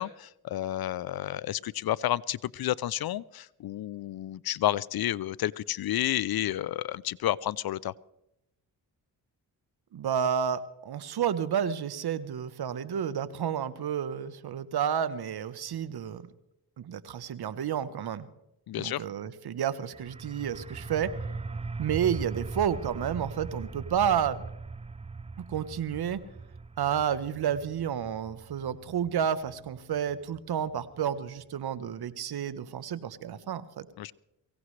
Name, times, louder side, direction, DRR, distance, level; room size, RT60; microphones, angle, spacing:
voice 1, 0.0-7.9 18.7-19.0 34.0-34.1, left 13 dB, 60° left, 22 dB, 0.5 m, -31 dB
voice 2, 9.9-16.2 16.8-18.3 18.8-21.1 21.8-24.4 25.4-26.2 26.8-33.9, right 8 dB, 65° right, 15 dB, 1.1 m, -30 dB
sound 1, 19.9-31.4, right 3 dB, 15° right, 0.5 m, -41 dB
23.5 x 16.5 x 3.3 m, 0.86 s
cardioid pair, 65°, 41 cm